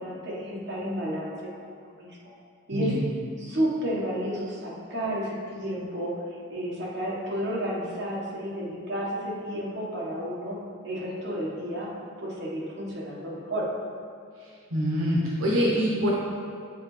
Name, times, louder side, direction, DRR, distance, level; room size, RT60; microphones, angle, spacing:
voice 1, 0.0-1.3 2.0-2.2 2.7-3.0 3.4-6.2 6.5-11.9 12.2-13.7, equal, 50° right, -6 dB, 1.3 m, -31 dB
voice 2, 2.7-3.0 14.7-16.1, equal, 80° right, -4 dB, 1.0 m, -25 dB
8.6 x 3.8 x 3.2 m, 2.4 s
head